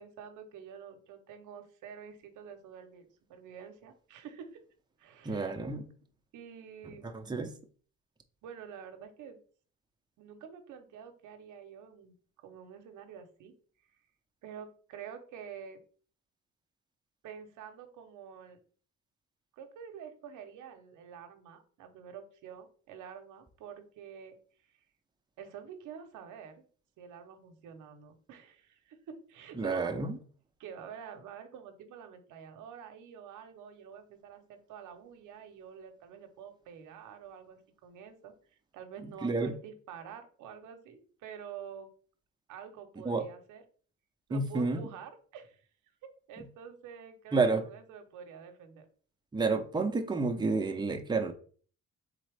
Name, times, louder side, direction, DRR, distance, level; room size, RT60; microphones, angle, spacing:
voice 1, 0.0-4.6 5.0-5.9 6.3-7.1 8.4-9.4 10.2-12.2 12.4-13.5 14.4-15.8 17.2-18.6 19.5-24.3 25.4-26.6 27.0-29.9 30.6-38.3 38.7-41.9 42.5-43.6 44.3-45.7 46.3-48.9, right 7 dB, 85° right, 0.8 m, -48 dB
voice 2, 5.2-5.8 7.0-7.5 29.6-30.2 39.2-39.5 43.0-43.2 44.3-44.8 47.3-47.6 49.3-51.3, right 3 dB, 15° right, 0.7 m, -30 dB
4.1 x 3.7 x 3.3 m
cardioid pair, 90°, 30 cm